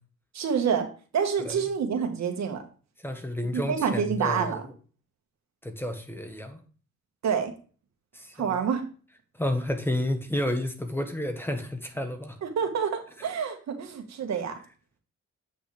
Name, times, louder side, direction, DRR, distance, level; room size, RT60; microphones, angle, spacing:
voice 1, 0.3-0.9 1.1-2.6 3.5-4.7 7.2-7.5 8.4-8.8 12.4-14.5, right 7 dB, 60° right, 1.6 m, -27 dB
voice 2, 3.0-4.6 5.6-6.6 8.1-8.6 9.4-12.3, left 1 dB, 5° left, 1.3 m, -31 dB
8.1 x 6.1 x 3.4 m
cardioid pair, 90°, 30 cm